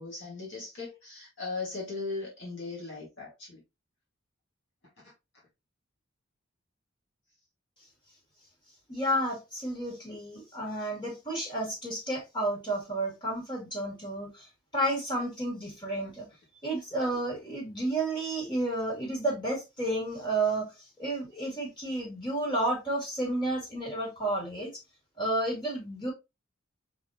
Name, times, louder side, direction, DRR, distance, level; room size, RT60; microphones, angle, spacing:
voice 1, 0.0-3.6, left 3 dB, 65° left, 1.9 m, -38 dB
voice 2, 8.9-14.5 14.7-16.3 16.6-24.7 25.2-26.1, right 1 dB, 25° left, 2.5 m, -31 dB
4.8 x 3.8 x 2.8 m
head